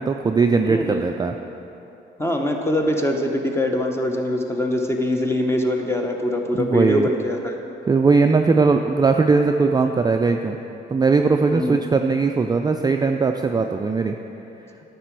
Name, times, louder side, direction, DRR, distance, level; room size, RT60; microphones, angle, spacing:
voice 1, 0.0-1.3 6.5-7.1 7.9-10.6 10.9-14.1, right 4 dB, 20° right, 5 dB, 0.3 m, -19 dB
voice 2, 0.7-1.0 2.2-7.5 11.5-11.8, left 1 dB, 15° left, 3 dB, 1.0 m, -23 dB
10.0 x 6.7 x 4.6 m, 3.0 s
cardioid pair, 90°, 20 cm